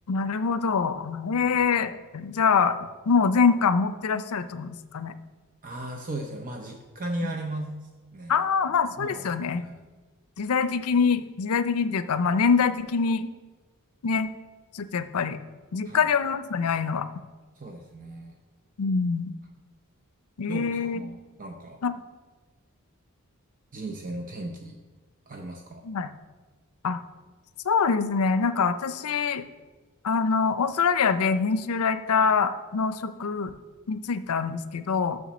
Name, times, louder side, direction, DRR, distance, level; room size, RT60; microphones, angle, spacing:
voice 1, 0.1-5.1 7.2-7.3 8.3-9.6 10.4-13.3 14.0-14.3 14.7-15.4 15.7-17.1 18.8-19.3 20.4-21.0 21.8-21.9 25.8-26.1 26.8-27.0 27.7-29.4 30.0-33.5 33.9-35.2, left 5 dB, 80° left, 12 dB, 0.5 m, -24 dB
voice 2, 5.6-8.4 9.0-9.8 15.8-16.1 17.6-18.4 20.5-21.8 23.7-24.8 25.3-25.8, right 1 dB, 40° right, 2 dB, 0.6 m, -37 dB
7.2 x 6.4 x 6.1 m, 1.3 s
head